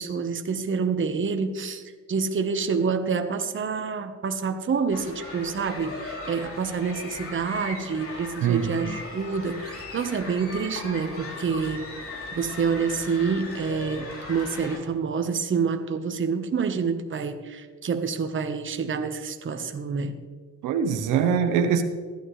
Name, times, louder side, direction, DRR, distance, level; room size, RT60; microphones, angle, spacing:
voice 1, 0.0-1.8 2.1-11.9 12.3-20.1, right 5 dB, 40° right, 7 dB, 1.2 m, -27 dB
sound 1, 4.9-14.8, left 2 dB, 50° left, 3.3 m, -38 dB
voice 2, 8.4-8.9 20.6-21.8, right 7 dB, 90° right, 7 dB, 1.0 m, -23 dB
15.5 x 12.0 x 3.3 m, 1.5 s
cardioid pair, 90°, 30 cm